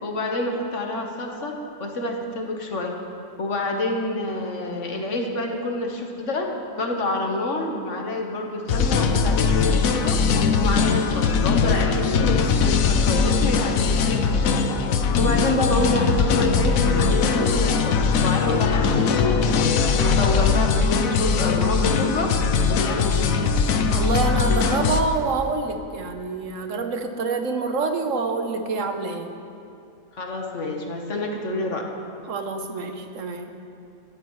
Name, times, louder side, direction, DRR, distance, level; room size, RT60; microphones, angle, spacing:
voice 1, 0.0-3.0 3.4-10.2 10.6-14.6 15.2-22.3 22.7-23.3 30.1-31.9, left 2 dB, 60° left, 1 dB, 1.6 m, -27 dB
sound 1, 8.7-25.0, left 5 dB, 75° left, 1.1 m, -20 dB
voice 2, 23.9-29.3 32.3-33.6, right 4 dB, 65° right, 6 dB, 1.2 m, -27 dB
17.5 x 13.0 x 3.2 m, 2.5 s
omnidirectional pair, 1.5 m